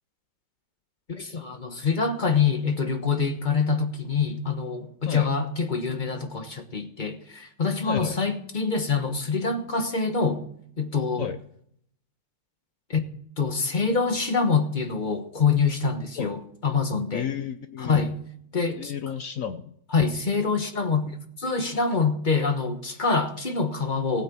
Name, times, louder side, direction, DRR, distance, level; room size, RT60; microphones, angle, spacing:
voice 1, 1.1-10.4 10.8-11.3 12.9-13.1 13.4-17.3 17.8-18.2 18.5-18.9 19.9-21.1 21.4-24.2, left 5 dB, 30° left, 1.0 m, -25 dB
voice 2, 7.8-8.2 11.2-11.4 16.2-16.3 17.1-18.0 18.8-19.7, left 8 dB, 60° left, 0.9 m, -32 dB
16.0 x 8.8 x 6.0 m
omnidirectional pair, 2.0 m